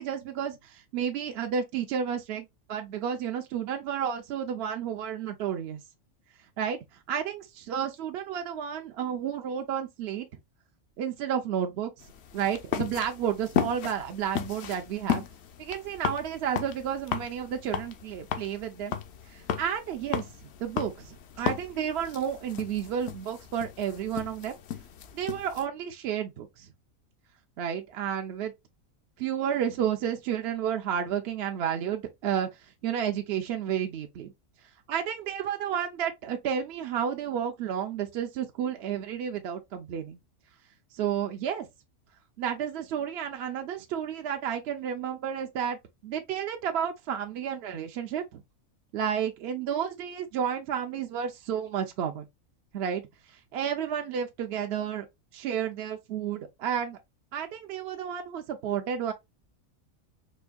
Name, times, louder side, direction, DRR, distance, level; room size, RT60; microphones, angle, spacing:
voice 1, 0.0-5.8 6.6-6.8 7.1-10.3 11.0-11.9 12.3-15.2 15.6-18.9 19.3-20.3 20.6-24.6 25.1-26.7 27.6-28.5 29.2-32.5 32.8-34.3 34.9-40.2 40.9-41.7 42.4-45.8 46.0-48.4 48.9-52.2 52.7-53.0 53.3-55.1 55.3-57.0 57.3-59.1, right 8 dB, 60° right, 0.7 m, -31 dB
sound 1, 12.0-25.6, left 8 dB, 65° left, 0.7 m, -35 dB
4.4 x 2.7 x 2.2 m
omnidirectional pair, 1.4 m